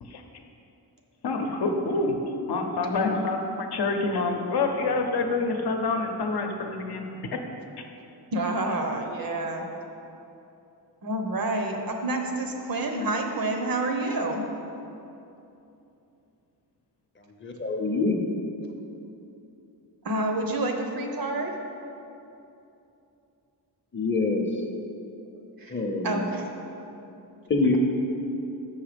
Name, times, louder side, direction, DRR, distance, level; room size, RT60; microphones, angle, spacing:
voice 1, 1.2-2.2 2.5-7.4, left 3 dB, 70° left, 4 dB, 0.8 m, -27 dB
voice 2, 8.3-9.7 11.0-14.4 20.0-21.5 25.6-26.5, right 2 dB, 55° right, 3 dB, 0.9 m, -28 dB
voice 3, 17.4-18.2 23.9-24.4 25.7-26.3 27.5-27.8, left 3 dB, 30° left, 2 dB, 0.7 m, -25 dB
6.4 x 5.6 x 5.1 m, 2.8 s
wide cardioid pair, 140°, 41 cm